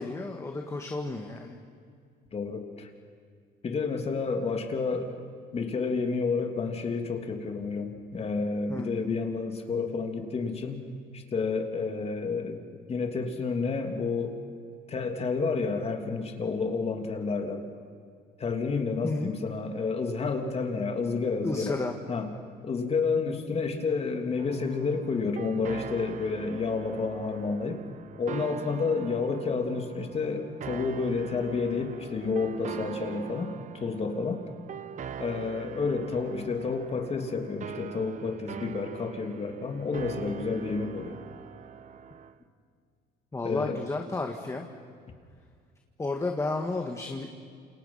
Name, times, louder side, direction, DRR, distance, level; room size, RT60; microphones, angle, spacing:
voice 1, 0.0-1.6 8.7-8.9 19.0-19.3 21.4-21.9 43.3-44.7 46.0-47.3, left 3 dB, 15° left, 3 dB, 1.8 m, -32 dB
voice 2, 2.3-2.9 3.6-5.2 5.5-10.8 11.1-12.6 12.9-14.4 14.9-17.6 18.4-21.8 22.1-22.3 22.6-27.8 28.2-34.4 35.2-41.2 43.4-43.8, left 4 dB, 35° left, 4 dB, 3.1 m, -30 dB
sound 1, 24.4-42.3, right 8 dB, 45° right, 1.1 m, -42 dB
29.0 x 28.0 x 5.7 m, 2.1 s
cardioid pair, 110°, 17 cm